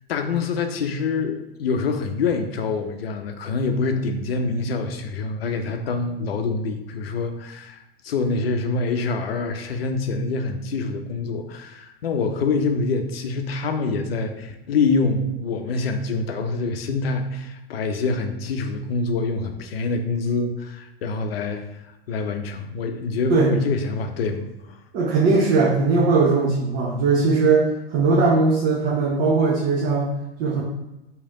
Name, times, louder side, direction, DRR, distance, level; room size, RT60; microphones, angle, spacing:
voice 1, 0.1-24.8, left 4 dB, 70° left, 6 dB, 0.6 m, -26 dB
voice 2, 24.9-30.1 30.4-30.6, right 4 dB, 35° right, -3 dB, 0.7 m, -19 dB
3.2 x 2.9 x 3.7 m, 0.94 s
figure-of-eight pair, 95°, 31 cm